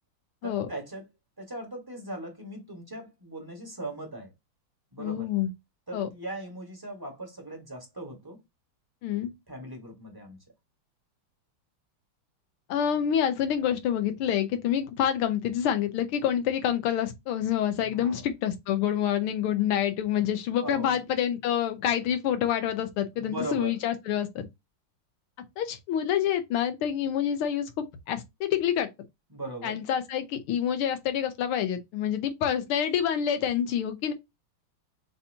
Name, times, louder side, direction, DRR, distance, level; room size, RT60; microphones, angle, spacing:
voice 1, 0.4-1.0 1.4-4.3 4.9-5.3 5.9-8.4 9.5-10.4 17.8-18.2 20.1-20.2 20.6-21.0 23.1-23.7 29.3-29.8, right 1 dB, 15° right, 1.0 m, -39 dB
voice 2, 5.0-5.5 5.9-6.1 9.0-9.3 12.7-24.5 25.6-28.9 29.6-34.1, left 9 dB, 90° left, 1.7 m, -27 dB
6.7 x 2.8 x 2.7 m
omnidirectional pair, 2.4 m